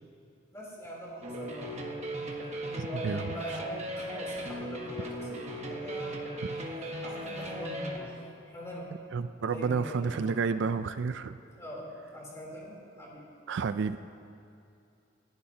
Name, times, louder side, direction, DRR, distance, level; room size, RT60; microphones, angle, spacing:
voice 1, 0.5-1.7 2.8-6.2 6.8-8.2 8.5-8.9 9.4-10.6 11.6-13.3, equal, 15° left, -5 dB, 3.5 m, -42 dB
sound 1, 1.2-8.0, equal, 35° right, 1.3 m, -37 dB
voice 2, 2.8-3.2 9.1-11.4 13.5-14.0, right 5 dB, 60° right, 11 dB, 0.4 m, -30 dB
28.0 x 11.0 x 2.9 m, 2.6 s
head